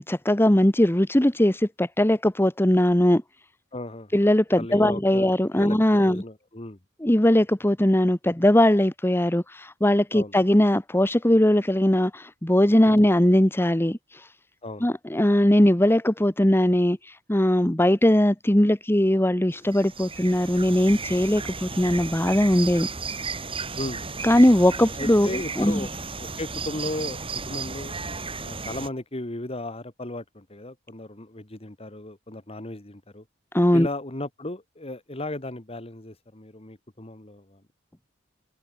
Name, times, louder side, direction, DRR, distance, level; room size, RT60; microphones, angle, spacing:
voice 1, 0.0-3.2 4.1-6.2 7.0-14.3 14.8-22.9 24.2-25.3 25.6-25.8 33.5-33.9, left 1 dB, 10° left, 1.3 m, -20 dB
voice 2, 3.7-4.2 4.6-6.8 10.1-10.3 12.8-13.0 14.6-14.9 23.8-24.1 25.0-25.9 26.2-27.9 28.4-33.2 33.7-37.6, left 1 dB, 30° left, 2.2 m, -35 dB
sound 1, 19.5-28.9, right 4 dB, 30° right, 7.2 m, -34 dB
head